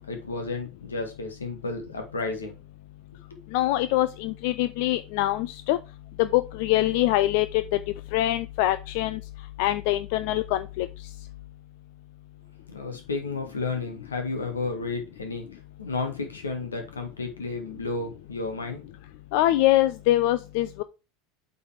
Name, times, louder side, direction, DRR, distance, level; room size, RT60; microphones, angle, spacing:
voice 1, 0.1-2.5 12.7-15.4 15.8-18.9, left 3 dB, 85° left, 1.9 m, -32 dB
voice 2, 3.5-5.8 6.2-7.8 8.1-9.2 9.6-10.9 19.3-20.8, left 15 dB, 60° left, 0.4 m, -24 dB
8.5 x 4.0 x 4.7 m
hypercardioid pair, 80°, 0 cm